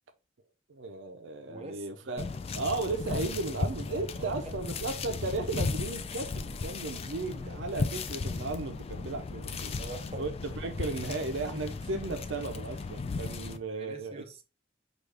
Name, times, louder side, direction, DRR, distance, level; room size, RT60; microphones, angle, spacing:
voice 1, 0.7-2.3 2.5-9.8 10.2-14.2, right 3 dB, 85° right, 0.5 m, -35 dB
voice 2, 1.5-2.1 4.1-4.3 9.8-10.2 13.4-14.4, right 2 dB, 35° right, 0.6 m, -44 dB
sound 1, 2.2-13.6, left 4 dB, 30° left, 0.3 m, -36 dB
5.0 x 2.4 x 3.3 m
head